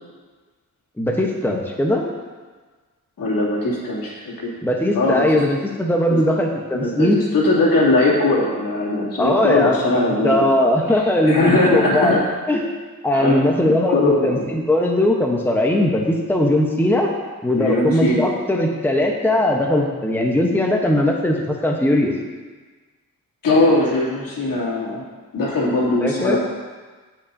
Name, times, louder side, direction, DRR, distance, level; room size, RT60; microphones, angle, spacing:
voice 1, 1.0-2.0 4.6-7.2 9.2-12.2 12.5-12.7 13.0-17.1 17.4-22.1 26.0-26.4, left 1 dB, 5° left, 0 dB, 1.0 m, -19 dB
voice 2, 3.2-4.5 4.9-5.4 6.7-10.4 11.3-12.2 13.1-13.4 13.6-14.5 17.5-18.2 23.4-25.0 25.3-26.4, left 2 dB, 70° left, -5 dB, 2.9 m, -20 dB
17.0 x 5.8 x 2.7 m, 1.4 s
cardioid pair, 80°, 34 cm